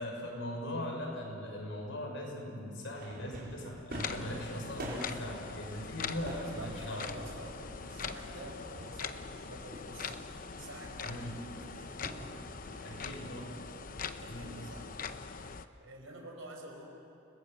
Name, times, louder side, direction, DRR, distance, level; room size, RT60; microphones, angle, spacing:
voice 1, 0.0-7.1 11.0-11.7 12.8-13.5 14.3-14.5, left 1 dB, 70° left, 0 dB, 6.1 m, -40 dB
sound 1, 3.0-13.0, equal, 50° right, 4.9 m, -47 dB
sound 2, 3.9-15.7, left 5 dB, 45° left, 0.8 m, -42 dB
voice 2, 6.0-11.4 11.7-12.8 14.1-15.4 15.8-16.9, right 1 dB, 80° right, 2 dB, 5.4 m, -49 dB
29.5 x 20.5 x 7.8 m, 2.8 s
head